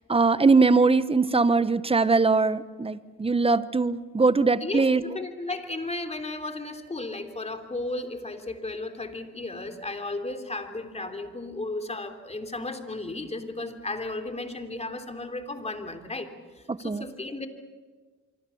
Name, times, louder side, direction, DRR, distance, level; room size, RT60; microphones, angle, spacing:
voice 1, 0.1-5.0 16.7-17.0, right 4 dB, 20° right, 15 dB, 1.0 m, -21 dB
voice 2, 4.6-16.3 16.6-17.5, left 2 dB, 20° left, 6 dB, 3.1 m, -34 dB
25.5 x 24.0 x 7.1 m, 1.5 s
cardioid pair, 90°, 30 cm